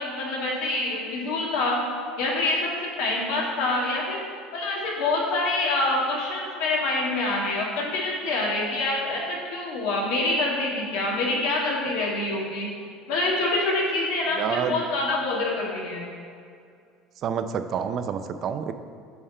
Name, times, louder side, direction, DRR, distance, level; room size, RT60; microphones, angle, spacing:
voice 1, 0.0-1.8 2.2-4.2 4.5-12.7 13.1-16.0, left 2 dB, 80° left, -3 dB, 1.8 m, -26 dB
voice 2, 14.4-14.8 17.2-18.7, right 7 dB, 50° right, 9 dB, 0.5 m, -28 dB
8.7 x 3.6 x 5.5 m, 2.3 s
supercardioid pair, 110°, 0 cm